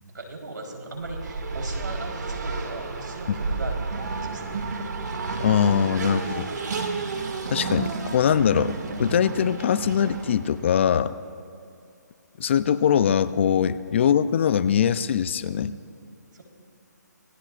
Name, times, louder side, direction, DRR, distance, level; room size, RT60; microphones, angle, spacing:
voice 1, 0.1-4.9 13.9-14.0 16.3-16.4, right 2 dB, 85° right, 1 dB, 3.9 m, -38 dB
Race car auto racing, 0.9-10.6, right 4 dB, 70° right, 2.2 m, -31 dB
voice 2, 5.4-6.5 7.5-11.1 12.4-15.7, left 8 dB, 40° left, 14 dB, 0.5 m, -22 dB
26.5 x 19.0 x 2.5 m, 2.5 s
hypercardioid pair, 160°, 10 cm